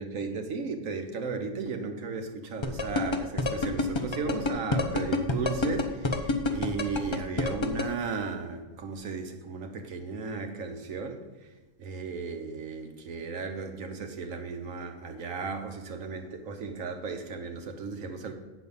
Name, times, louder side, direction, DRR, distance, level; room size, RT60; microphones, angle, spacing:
voice 1, 0.0-11.2 11.8-18.3, right 4 dB, 80° right, 5 dB, 1.4 m, -35 dB
sound 1, 2.6-7.8, left 2 dB, 35° left, 0.5 m, -26 dB
8.2 x 6.3 x 5.4 m, 1.2 s
omnidirectional pair, 1.4 m